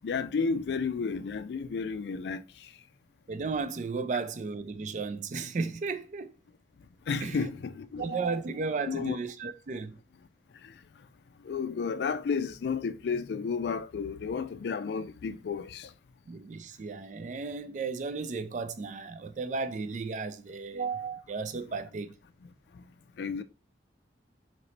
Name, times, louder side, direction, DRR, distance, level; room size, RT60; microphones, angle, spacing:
voice 1, 0.0-2.7 7.1-8.3 8.9-9.2 10.6-10.8 11.4-15.9 22.7-22.8 23.2-23.4, left 5 dB, 70° left, 0.3 m, -32 dB
voice 2, 3.3-6.3 7.2-7.4 8.0-10.0 16.3-22.1, right 4 dB, 45° right, 0.3 m, -34 dB
4.0 x 2.9 x 3.1 m
head